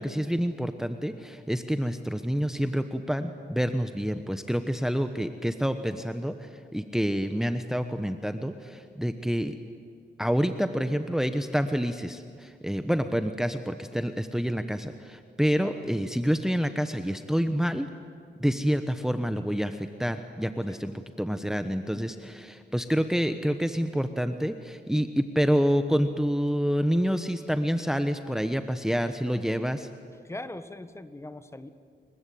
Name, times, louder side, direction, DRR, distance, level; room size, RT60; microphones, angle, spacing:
voice 1, 0.0-9.5 10.2-17.9 18.4-29.9, equal, 5° right, 8 dB, 1.1 m, -28 dB
voice 2, 30.2-31.7, left 2 dB, 15° left, 11 dB, 1.5 m, -40 dB
29.5 x 22.5 x 8.6 m, 2.2 s
cardioid pair, 95°, 19 cm